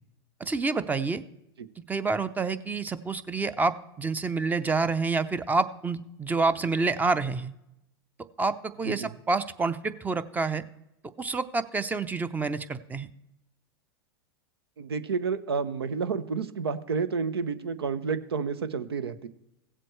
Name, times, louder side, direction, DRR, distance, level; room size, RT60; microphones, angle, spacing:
voice 1, 0.4-1.2 1.9-7.5 8.4-10.6 11.2-13.1, right 3 dB, 15° right, 14 dB, 0.5 m, -28 dB
voice 2, 14.8-19.3, right 5 dB, 90° right, 14 dB, 0.7 m, -30 dB
16.5 x 7.6 x 3.1 m, 0.88 s
hypercardioid pair, 105°, 13 cm